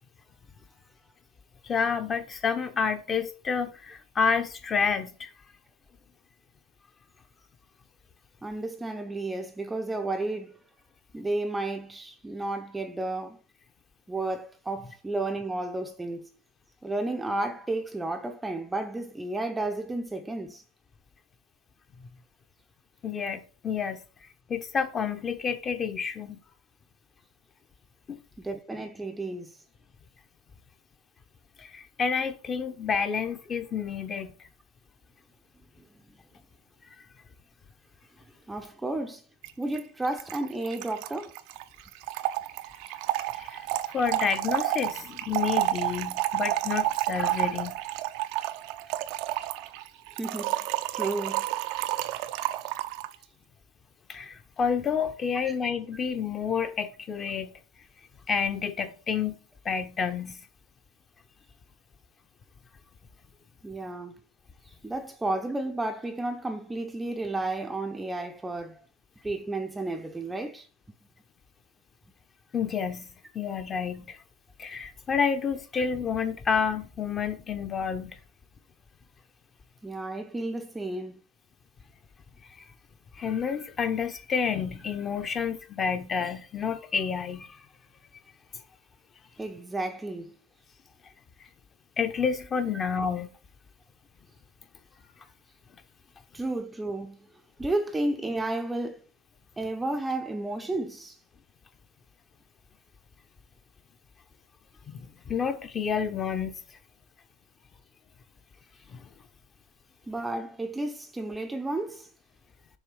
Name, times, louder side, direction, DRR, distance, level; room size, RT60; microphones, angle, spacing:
voice 1, 1.6-5.3 23.0-24.0 24.5-26.4 28.1-28.2 31.6-34.3 43.4-43.6 43.9-47.8 54.1-57.5 58.3-60.4 72.5-73.1 73.3-74.2 74.6-78.2 83.2-87.5 92.0-93.3 104.9-106.6 108.9-109.0, left 6 dB, 25° left, 1.0 m, -29 dB
voice 2, 8.4-10.5 11.1-13.4 14.1-16.3 16.8-20.6 28.4-29.6 38.5-39.2 39.6-41.3 48.9-49.4 50.2-50.7 50.9-51.5 55.4-55.6 63.6-64.2 64.8-68.8 69.2-70.7 79.8-81.2 89.4-90.4 96.3-97.3 97.6-99.0 99.6-101.2 110.1-112.1, right 2 dB, 10° right, 0.7 m, -32 dB
Trickle dribble / Fill (with liquid), 39.4-39.5 39.8-39.9 40.0-53.1, right 15 dB, 60° right, 0.5 m, -30 dB
6.7 x 3.5 x 4.9 m
hypercardioid pair, 110°, 0 cm